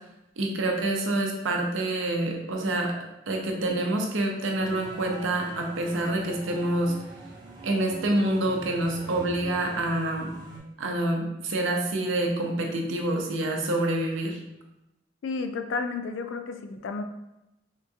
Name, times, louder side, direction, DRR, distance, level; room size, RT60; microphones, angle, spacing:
voice 1, 0.4-2.9 3.3-6.9 7.6-10.3 10.8-14.4, right 1 dB, 90° right, 1 dB, 0.6 m, -27 dB
sound 1, 4.6-10.6, right 2 dB, 20° right, 0.6 m, -44 dB
voice 2, 15.2-17.0, left 4 dB, 80° left, 7 dB, 0.3 m, -32 dB
3.7 x 2.3 x 2.6 m, 0.92 s
head